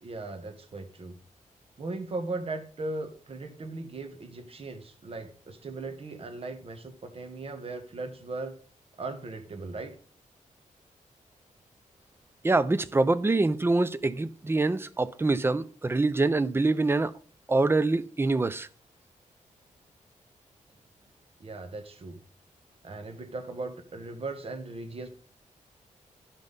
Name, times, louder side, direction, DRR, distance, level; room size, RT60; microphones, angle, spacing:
voice 1, 0.0-1.2 1.8-8.6 9.0-9.9 21.4-22.2 22.8-25.1, right 3 dB, 45° right, 1.2 m, -38 dB
voice 2, 12.4-17.1 17.5-18.7, right 3 dB, 15° right, 0.5 m, -25 dB
12.0 x 5.4 x 4.0 m
wide cardioid pair, 110°, 14 cm